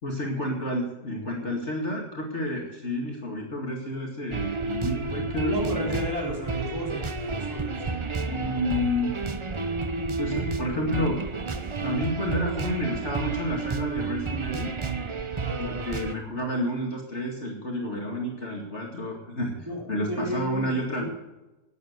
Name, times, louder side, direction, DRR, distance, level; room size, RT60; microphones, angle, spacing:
voice 1, 0.0-5.9 8.3-9.1 10.2-11.2 11.8-14.7 15.6-19.5 19.9-21.0, left 1 dB, 45° left, -1 dB, 2.4 m, -30 dB
sound 1, 4.3-16.1, right 4 dB, 35° right, 0.5 m, -31 dB
voice 2, 5.4-8.1 15.4-15.9 19.6-20.8, equal, 15° right, -4 dB, 4.4 m, -33 dB
12.5 x 9.1 x 8.1 m, 1.0 s
omnidirectional pair, 1.7 m